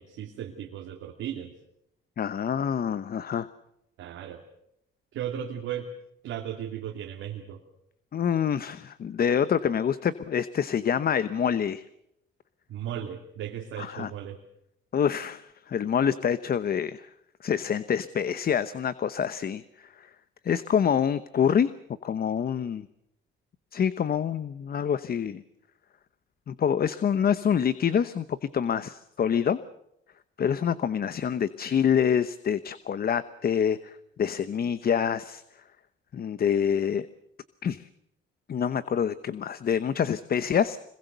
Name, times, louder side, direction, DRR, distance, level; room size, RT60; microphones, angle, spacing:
voice 1, 0.0-1.5 4.0-4.4 5.1-5.9 6.2-7.6 12.7-14.4, right 9 dB, 85° right, 1 dB, 2.7 m, -36 dB
voice 2, 2.2-3.5 8.1-11.8 13.8-14.1 14.9-17.1 17.4-20.1 20.4-21.7 22.0-22.9 23.7-25.4 26.5-29.6 30.4-35.4 36.1-37.1 37.6-37.8 38.5-40.8, left 8 dB, 50° left, 14 dB, 1.0 m, -26 dB
26.0 x 22.5 x 6.8 m, 0.79 s
cardioid pair, 90°, 20 cm